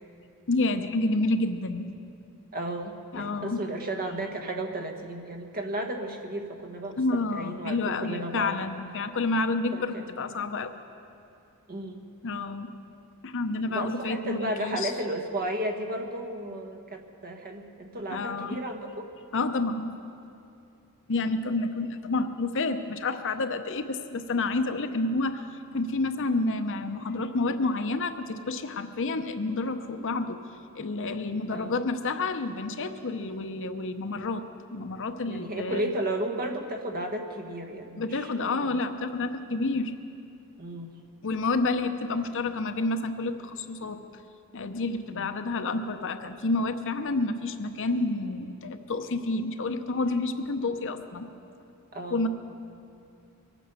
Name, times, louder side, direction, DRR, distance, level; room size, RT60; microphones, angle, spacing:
voice 1, 0.5-1.9 3.1-3.6 7.0-10.7 12.2-12.7 13.2-14.9 18.1-18.6 19.3-19.9 21.1-30.4 30.8-34.4 34.7-35.8 38.0-39.9 41.2-44.0 44.5-51.3 52.1-52.3, left 3 dB, 60° left, 8 dB, 0.8 m, -29 dB
voice 2, 2.5-8.6 9.7-10.1 11.7-12.0 13.7-19.1 31.5-31.7 35.2-38.8 40.6-41.0 45.1-45.3 51.9-52.3, right 1 dB, 40° right, 4 dB, 1.3 m, -34 dB
23.0 x 9.1 x 6.9 m, 2.7 s
head